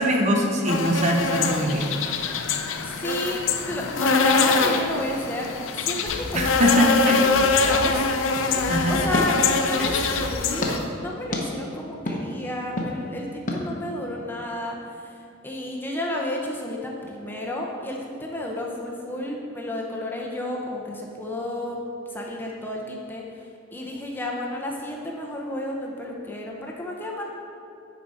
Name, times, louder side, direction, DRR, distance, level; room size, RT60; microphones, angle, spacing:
voice 1, 0.0-2.0 6.3-7.2 8.7-9.0, equal, 35° right, 1 dB, 0.6 m, -22 dB
sound 1, 0.7-10.8, left 4 dB, 70° left, 0.5 m, -24 dB
voice 2, 2.8-5.5 5.7-8.1 8.4-27.2, left 1 dB, 10° left, -2 dB, 0.7 m, -32 dB
sound 2, 6.1-8.3 8.6-10.9, equal, 50° right, 1.0 m, -36 dB
sound 3, 8.3-10.1 10.6-10.7 11.3-11.4 12.1-12.2 12.8-12.9 13.5-13.6, left 1 dB, 40° left, 0.9 m, -29 dB
9.8 x 4.9 x 4.1 m, 2.6 s
head